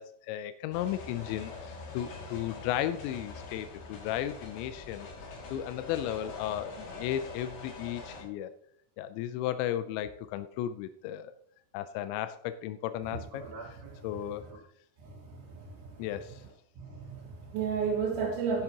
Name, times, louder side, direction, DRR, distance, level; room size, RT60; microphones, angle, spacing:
voice 1, 0.0-5.1 5.5-8.5 9.0-11.3 11.7-13.8 14.0-14.5 16.0-16.4, left 11 dB, 85° left, 11 dB, 2.6 m, -35 dB
sound 1, 0.7-8.2, left 3 dB, 60° left, 4.2 m, -44 dB
voice 2, 13.1-14.1 15.0-16.0 16.8-18.6, right 5 dB, 75° right, -5 dB, 4.0 m, -34 dB
11.5 x 11.0 x 2.9 m, 0.68 s
omnidirectional pair, 5.7 m